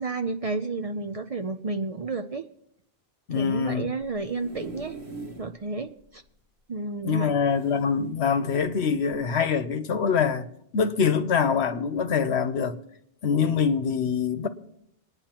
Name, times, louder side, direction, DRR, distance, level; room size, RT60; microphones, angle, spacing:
voice 1, 0.0-2.4 3.3-5.0 5.4-6.2 6.7-7.4, right 3 dB, 45° right, 0.5 m, -31 dB
voice 2, 3.3-3.9 7.0-10.4 10.7-12.8 13.2-14.5, left 6 dB, 85° left, 1.1 m, -24 dB
sound 1, 4.0-5.5 6.0-6.1 6.3-6.4 7.5-8.4 9.1-9.3, right 3 dB, 75° right, 2.0 m, -41 dB
28.5 x 9.7 x 2.9 m
omnidirectional pair, 1.1 m